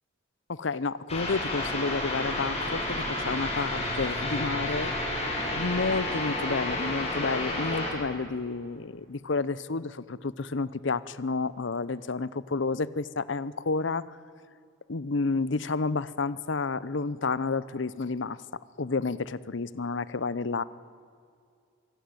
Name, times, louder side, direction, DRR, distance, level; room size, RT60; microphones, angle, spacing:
voice 1, 0.5-4.9 5.6-14.2 14.9-18.4 18.8-20.6, left 4 dB, 65° left, 18 dB, 0.7 m, -30 dB
sound 1, 1.1-7.9, left 1 dB, 35° left, 6.0 m, -31 dB
24.0 x 16.0 x 9.2 m, 2.3 s
head